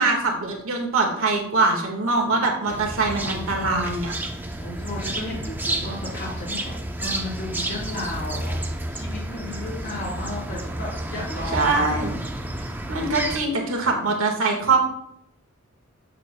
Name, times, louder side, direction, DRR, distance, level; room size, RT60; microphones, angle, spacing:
voice 1, 0.0-4.1 11.5-12.1 12.9-14.8, right 3 dB, 80° right, 1 dB, 1.6 m, -23 dB
sound 1, 2.7-13.4, right 1 dB, 10° right, 0.6 m, -31 dB
voice 2, 4.6-6.7 7.0-12.1, left 1 dB, 60° left, -11 dB, 2.8 m, -34 dB
8.1 x 6.6 x 2.2 m, 0.72 s
head